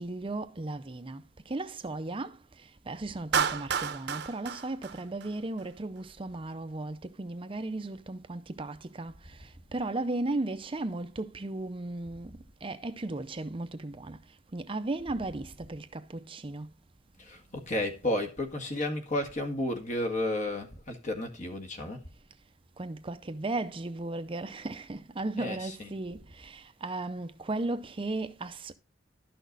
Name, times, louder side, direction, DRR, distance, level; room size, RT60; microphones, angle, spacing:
voice 1, 0.0-2.4 2.9-9.1 9.7-14.2 14.5-16.7 22.8-28.7, right 2 dB, 30° right, 0.6 m, -36 dB
Clapping, 3.3-5.6, right 7 dB, 65° right, 0.8 m, -31 dB
voice 2, 17.2-22.1 25.4-26.0, left 1 dB, 45° left, 1.7 m, -32 dB
12.0 x 6.3 x 3.9 m
head